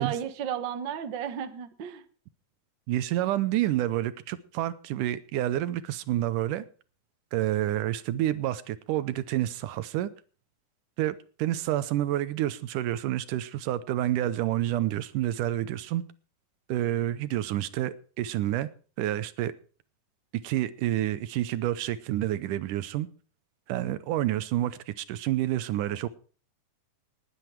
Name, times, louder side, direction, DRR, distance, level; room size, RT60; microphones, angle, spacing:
voice 1, 0.0-2.0, right 9 dB, 50° right, 1.5 m, -33 dB
voice 2, 2.9-6.7 7.3-10.1 11.0-16.0 16.7-18.7 19.0-19.5 20.4-23.1 23.7-26.1, right 13 dB, 80° right, 2.3 m, -29 dB
19.5 x 9.9 x 4.6 m
omnidirectional pair, 3.8 m